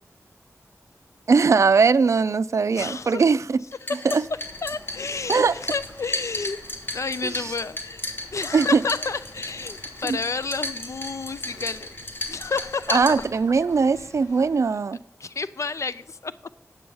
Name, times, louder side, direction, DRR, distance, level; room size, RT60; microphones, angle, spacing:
voice 1, 1.3-3.6 4.1-4.2 5.3-5.5 8.5-8.8 10.0-10.2 12.9-15.0, right 5 dB, 60° right, 0.4 m, -20 dB
voice 2, 2.7-3.3 4.6-6.6 6.9-8.0 8.3-11.9 12.3-13.3 15.2-16.3, left 4 dB, 60° left, 0.4 m, -30 dB
sound 1, 3.7-13.7, left 1 dB, 40° left, 1.6 m, -35 dB
sound 2, 4.1-14.8, left 2 dB, 80° left, 1.6 m, -48 dB
9.5 x 8.3 x 5.4 m
wide cardioid pair, 95°, 6 cm